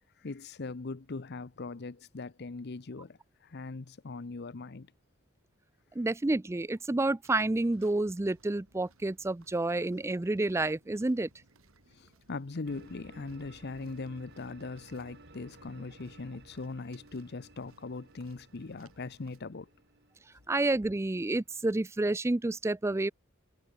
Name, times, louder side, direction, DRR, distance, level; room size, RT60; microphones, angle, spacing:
voice 1, 0.2-4.9 11.9-19.7, left 3 dB, 50° left, 0.7 m, -40 dB
voice 2, 6.0-11.3 20.5-23.1, right 2 dB, 15° right, 0.4 m, -29 dB
sound 1, 7.2-19.4, right 2 dB, 85° right, 3.0 m, -65 dB
sound 2, 12.7-21.5, right 2 dB, 55° right, 5.4 m, -56 dB
head